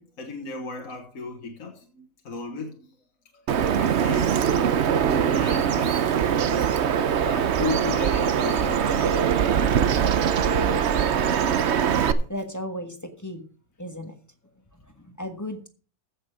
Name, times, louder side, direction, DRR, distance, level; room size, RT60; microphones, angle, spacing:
voice 1, 0.0-2.9 3.3-3.5 3.8-4.3 4.8-5.0 5.3-6.7 7.2-9.2 11.0-11.3 12.0-12.2, left 3 dB, 65° left, 1.9 m, -36 dB
Bird vocalization bird call bird song, 3.5-12.1, right 8 dB, 55° right, 0.9 m, -22 dB
voice 2, 12.3-13.4 13.8-14.2 14.7-15.7, equal, 10° left, 1.3 m, -35 dB
15.0 x 6.6 x 4.9 m
omnidirectional pair, 1.6 m